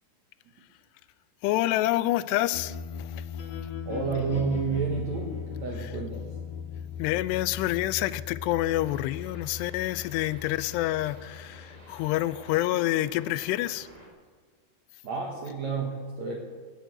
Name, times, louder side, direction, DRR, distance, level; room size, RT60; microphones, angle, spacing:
voice 1, 1.4-3.3 5.8-5.9 7.0-13.9, left 15 dB, 85° left, 17 dB, 2.5 m, -28 dB
sound 1, 2.5-12.6, left 7 dB, 50° left, 3.0 m, -39 dB
voice 2, 3.8-6.3 15.0-16.4, right 5 dB, 60° right, 0 dB, 2.0 m, -30 dB
sound 2, 8.8-14.1, right 1 dB, 10° right, 2.5 m, -52 dB
17.0 x 8.1 x 7.8 m, 1.5 s
omnidirectional pair, 5.0 m